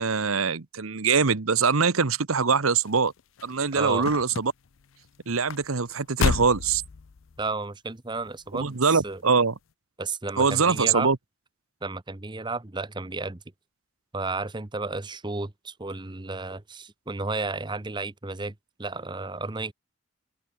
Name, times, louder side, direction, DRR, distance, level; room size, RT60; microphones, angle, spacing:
voice 1, 0.0-3.1 3.4-4.5 5.3-6.8 8.5-9.5 10.4-11.2, right 5 dB, 80° right, 1.1 m, -23 dB
sound 1, 2.7-7.5 8.2-8.6 8.9-9.0, left 5 dB, 65° left, 0.5 m, -31 dB
voice 2, 3.7-4.1 7.4-9.2 10.0-11.1 11.8-13.4 14.1-18.5 18.8-19.7, right 3 dB, 20° right, 0.9 m, -32 dB
open air
head